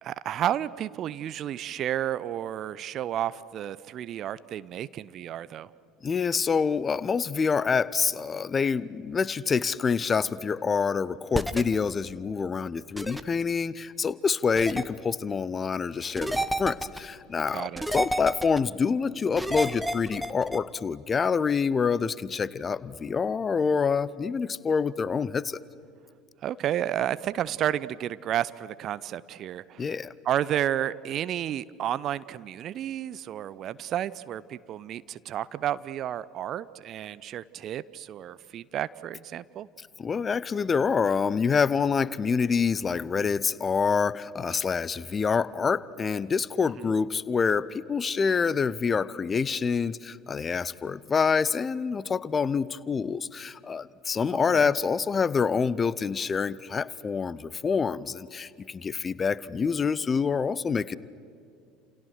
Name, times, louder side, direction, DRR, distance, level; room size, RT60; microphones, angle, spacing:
voice 1, 0.0-5.7 17.5-17.9 26.4-29.9 30.2-39.7 54.3-54.7, right 11 dB, 40° right, 17 dB, 0.7 m, -31 dB
voice 2, 6.0-25.6 29.8-30.1 39.8-61.0, left 5 dB, 25° left, 20 dB, 0.8 m, -27 dB
sound 1, 11.3-11.6 13.0-13.2 14.6-14.8 16.2-17.0 17.8-18.6 19.4-20.6, right 1 dB, 5° right, 1.2 m, -30 dB
30.0 x 28.5 x 6.5 m, 2.4 s
figure-of-eight pair, 65°, 0 cm